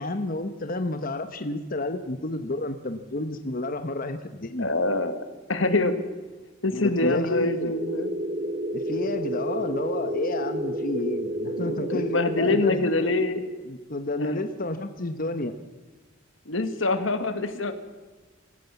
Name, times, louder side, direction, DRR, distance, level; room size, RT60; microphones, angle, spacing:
voice 1, 0.0-4.7 6.7-7.8 8.7-13.1 13.7-15.5, left 2 dB, 45° left, 8 dB, 1.2 m, -30 dB
voice 2, 4.6-6.0 6.6-8.1 11.6-13.4 14.2-14.4 16.5-17.7, left 2 dB, 80° left, 9 dB, 2.0 m, -25 dB
sound 1, 7.7-12.6, right 1 dB, 40° right, 1.0 m, -30 dB
25.5 x 15.0 x 7.2 m, 1.3 s
head